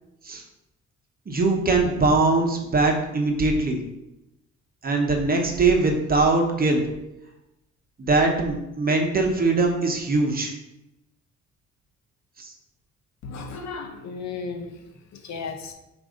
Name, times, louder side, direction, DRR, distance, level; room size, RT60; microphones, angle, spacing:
voice 1, 1.3-3.8 4.8-6.8 8.0-10.5 12.4-12.5, right 3 dB, 30° right, 2 dB, 0.9 m, -21 dB
voice 2, 13.2-14.7 15.2-15.7, left 4 dB, 65° left, 6 dB, 0.7 m, -34 dB
4.8 x 2.6 x 3.8 m, 0.92 s
cardioid pair, 90°, 30 cm